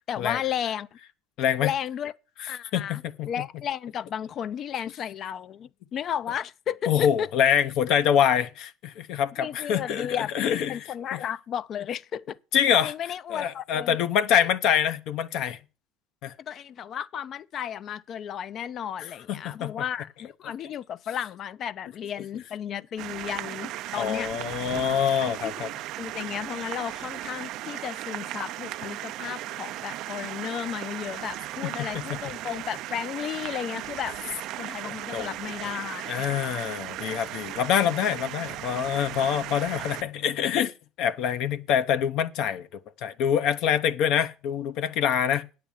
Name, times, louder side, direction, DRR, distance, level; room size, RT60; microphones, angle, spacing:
voice 1, 0.1-0.9 1.6-2.1 2.5-7.3 9.4-10.4 10.7-12.4 12.7-14.0 16.4-24.3 25.2-25.5 26.0-34.2 34.6-36.3, left 9 dB, 45° left, 0.5 m, -33 dB
voice 2, 1.4-1.7 2.7-3.3 6.9-11.2 12.5-12.9 13.3-15.6 16.2-16.3 19.3-19.7 24.0-25.7 31.8-32.2 34.8-35.3 36.1-40.7 41.0-45.5, left 9 dB, 60° left, 0.9 m, -25 dB
sound 1, 23.0-40.0, right 14 dB, 60° right, 0.5 m, -36 dB
9.2 x 6.8 x 7.2 m
supercardioid pair, 120°, 0 cm